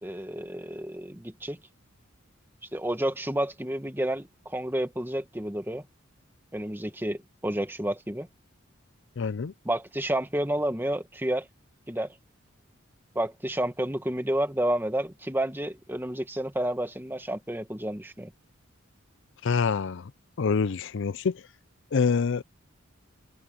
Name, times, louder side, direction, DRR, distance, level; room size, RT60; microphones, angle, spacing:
voice 1, 0.0-1.6 2.7-5.8 6.5-8.3 9.6-11.5 11.9-12.1 13.1-18.3, right 1 dB, 10° right, 1.5 m, -30 dB
voice 2, 9.2-9.5 19.4-20.1 20.4-21.4 21.9-22.4, left 5 dB, 60° left, 0.5 m, -26 dB
head